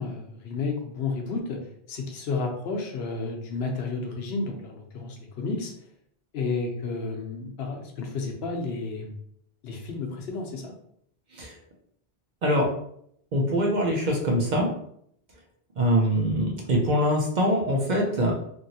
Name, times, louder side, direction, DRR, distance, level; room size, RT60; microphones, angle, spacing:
voice 1, 0.0-1.6 1.9-5.7 6.3-9.1 9.6-10.7, left 3 dB, 75° left, 2 dB, 0.9 m, -31 dB
voice 2, 13.3-14.7 15.8-18.3, equal, 55° right, 0 dB, 0.6 m, -23 dB
2.9 x 2.6 x 2.7 m, 0.69 s
omnidirectional pair, 1.1 m